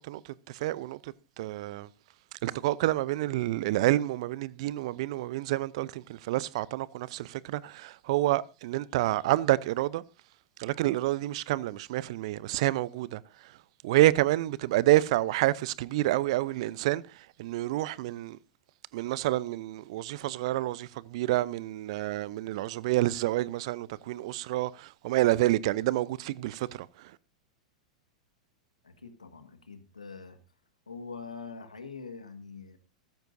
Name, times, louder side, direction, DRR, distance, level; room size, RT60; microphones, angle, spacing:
voice 1, 0.6-1.0 1.4-1.9 2.4-10.0 10.6-13.2 13.8-17.0 17.4-18.4 18.9-24.7 25.0-26.7, right 16 dB, 60° right, 0.6 m, -28 dB
voice 2, 28.8-30.4 30.9-32.8, left 5 dB, 90° left, 1.7 m, -44 dB
15.0 x 13.5 x 2.6 m
hypercardioid pair, 95°, 4 cm